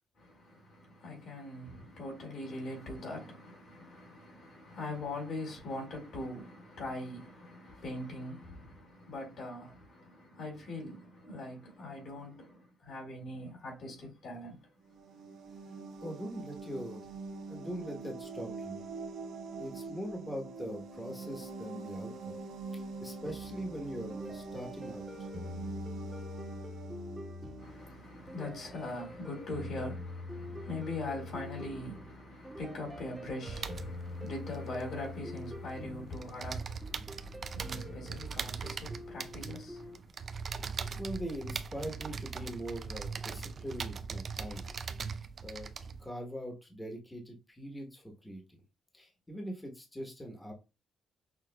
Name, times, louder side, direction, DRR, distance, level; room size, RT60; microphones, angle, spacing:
voice 1, 0.2-14.6 27.6-40.0, left 2 dB, 65° left, 2.1 m, -42 dB
sound 1, 14.8-28.4, right 3 dB, 80° right, 0.7 m, -44 dB
voice 2, 16.0-17.0 17.5-18.8 19.6-22.4 22.7-25.3 41.0-44.7 45.1-45.7 46.0-48.6 48.9-50.5, equal, 15° left, 1.0 m, -42 dB
sound 2, 23.2-40.0, left 2 dB, 10° right, 1.0 m, -45 dB
sound 3, 33.5-35.7 36.0-46.1, right 5 dB, 45° right, 0.3 m, -40 dB
5.9 x 2.4 x 2.2 m
cardioid pair, 90°, 0 cm